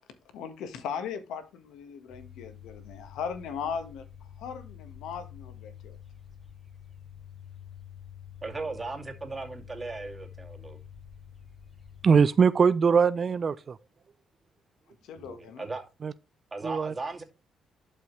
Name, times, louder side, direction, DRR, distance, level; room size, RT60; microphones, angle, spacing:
voice 1, 0.3-6.0 15.0-15.6, left 7 dB, 85° left, 1.5 m, -38 dB
sound 1, 2.1-12.3, left 8 dB, 25° left, 3.2 m, -48 dB
voice 2, 8.4-10.8 15.2-15.9 16.5-17.2, right 3 dB, 20° right, 2.5 m, -37 dB
voice 3, 12.0-13.8 16.0-16.1 16.6-16.9, right 6 dB, 45° right, 0.4 m, -22 dB
11.5 x 5.6 x 3.2 m
cardioid pair, 90°, 0 cm